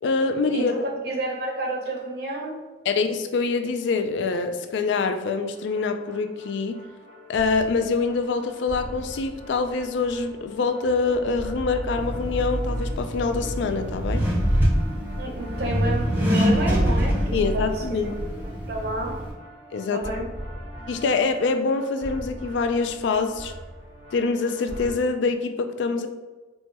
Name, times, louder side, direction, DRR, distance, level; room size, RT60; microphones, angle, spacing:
voice 1, 0.0-0.7 2.9-6.8 7.3-14.2 17.3-18.1 19.7-20.0 20.9-23.5 24.1-26.1, left 4 dB, 65° left, 7 dB, 0.3 m, -25 dB
voice 2, 0.5-2.6 15.2-17.7 18.4-19.2 19.9-20.3, right 1 dB, 55° right, 1 dB, 0.6 m, -30 dB
sound 1, 5.5-24.9, equal, 35° left, 1.0 m, -42 dB
sound 2, 10.8-16.6, equal, 85° right, 0.9 m, -36 dB
Accelerating revving vroom, 12.0-19.3, equal, 10° right, 0.5 m, -25 dB
4.4 x 2.2 x 2.9 m, 1.3 s
head